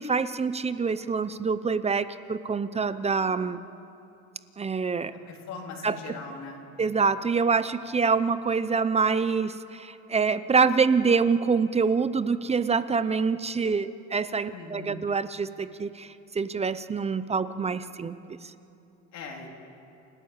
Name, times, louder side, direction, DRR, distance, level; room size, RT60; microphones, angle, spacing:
voice 1, 0.0-3.6 4.6-5.1 5.8-6.1 6.8-18.4, right 5 dB, 20° right, 13 dB, 0.7 m, -26 dB
voice 2, 5.3-6.6 14.5-15.0 19.1-19.5, left 4 dB, 60° left, 0 dB, 3.5 m, -40 dB
28.5 x 13.0 x 8.8 m, 2.8 s
cardioid pair, 120°, 31 cm